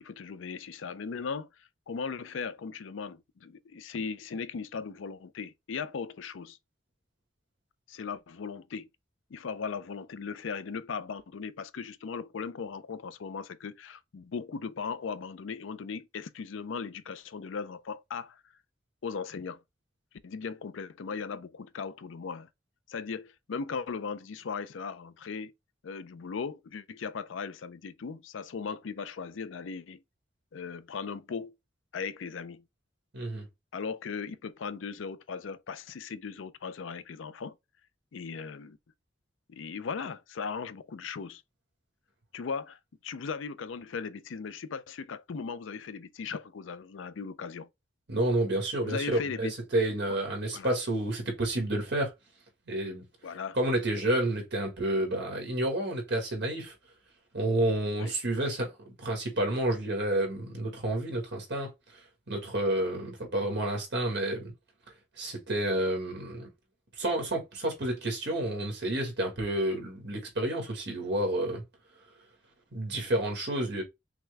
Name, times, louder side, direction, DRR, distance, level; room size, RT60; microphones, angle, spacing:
voice 1, 0.0-6.6 7.9-8.9 9.3-18.4 19.0-19.6 20.2-22.5 22.9-25.5 25.8-30.0 30.5-31.6 31.9-32.6 33.7-37.6 38.1-38.8 39.5-41.4 42.3-47.7 48.9-49.5 50.5-50.8 53.2-53.6 57.9-58.1, left 5 dB, 80° left, 0.5 m, -38 dB
voice 2, 33.1-33.5 48.1-52.1 52.7-53.0 53.5-56.7 57.3-58.7 59.0-61.7 62.3-64.5 65.2-66.5 67.0-71.6 72.7-73.8, right 1 dB, 65° right, 1.8 m, -30 dB
5.8 x 2.2 x 3.3 m
head